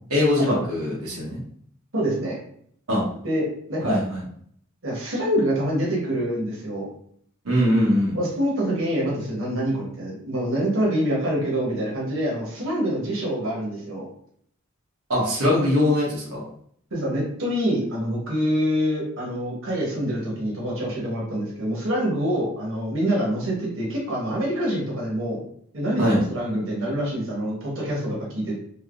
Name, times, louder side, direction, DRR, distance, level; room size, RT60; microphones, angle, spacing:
voice 1, 0.1-1.4 2.9-3.0 3.8-4.2 7.4-8.2 15.1-16.4 26.0-26.2, left 1 dB, 90° right, -5 dB, 1.0 m, -21 dB
voice 2, 1.9-2.4 3.2-4.0 4.8-6.9 8.1-14.1 16.9-25.4 25.7-28.6, equal, 60° right, -4 dB, 1.1 m, -26 dB
3.4 x 2.7 x 2.5 m, 0.63 s
head